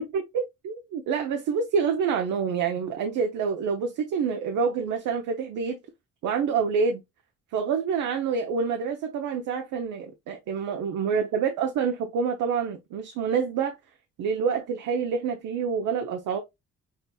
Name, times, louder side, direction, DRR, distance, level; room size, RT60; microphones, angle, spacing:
voice 1, 0.0-5.8 6.2-7.0 7.5-13.8 14.2-16.4, right 6 dB, 85° right, 0.7 m, -27 dB
5.8 x 2.8 x 2.2 m
cardioid pair, 90°, 30 cm